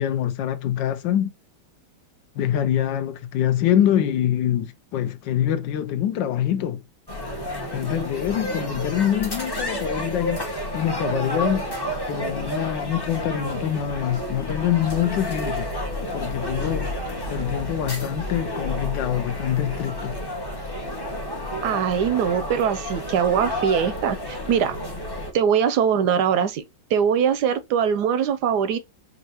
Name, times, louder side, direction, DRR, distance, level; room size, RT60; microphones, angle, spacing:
voice 1, 0.0-1.3 2.3-6.8 7.7-11.6 12.1-15.7 16.1-16.9 17.3-20.2, left 10 dB, 80° left, 1.3 m, -25 dB
sound 1, 7.1-25.3, equal, 25° left, 0.5 m, -30 dB
voice 2, 21.6-24.8 25.3-26.6 26.9-28.8, right 8 dB, 75° right, 1.0 m, -22 dB
5.4 x 2.6 x 2.8 m
omnidirectional pair, 2.1 m